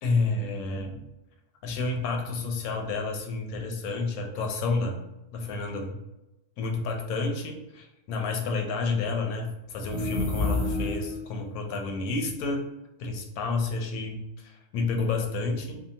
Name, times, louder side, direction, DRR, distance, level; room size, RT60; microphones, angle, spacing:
voice 1, 0.0-1.0 1.6-5.0 5.3-6.0 6.6-12.7 13.0-15.8, left 3 dB, 85° left, 3 dB, 1.0 m, -30 dB
sound 1, 9.7-11.3, left 2 dB, 30° left, 0.7 m, -29 dB
2.7 x 2.2 x 2.7 m, 0.96 s
omnidirectional pair, 1.5 m